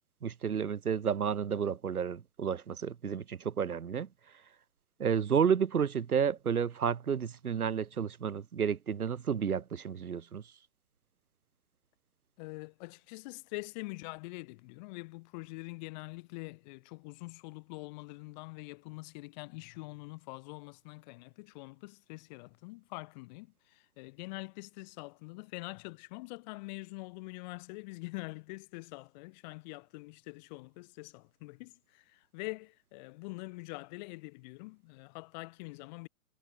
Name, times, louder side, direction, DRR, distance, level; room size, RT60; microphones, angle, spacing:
voice 1, 0.2-4.1 5.0-10.4, right 7 dB, 85° right, 1.0 m, -31 dB
voice 2, 12.4-36.1, left 25 dB, 30° left, 2.1 m, -45 dB
figure-of-eight pair, 130°, 43 cm